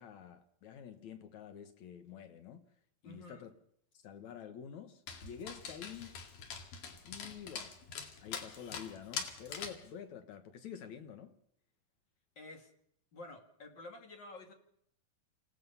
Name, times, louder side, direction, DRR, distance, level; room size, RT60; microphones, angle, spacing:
voice 1, 0.0-2.6 3.0-3.5 4.0-6.2 7.0-7.8 8.2-11.3, left 8 dB, 65° left, 2.3 m, -48 dB
voice 2, 3.0-3.5 12.4-12.7 13.1-14.5, left 2 dB, 35° left, 2.6 m, -50 dB
Dog, 5.1-9.9, left 6 dB, 85° left, 3.9 m, -44 dB
28.5 x 16.5 x 5.6 m
omnidirectional pair, 4.0 m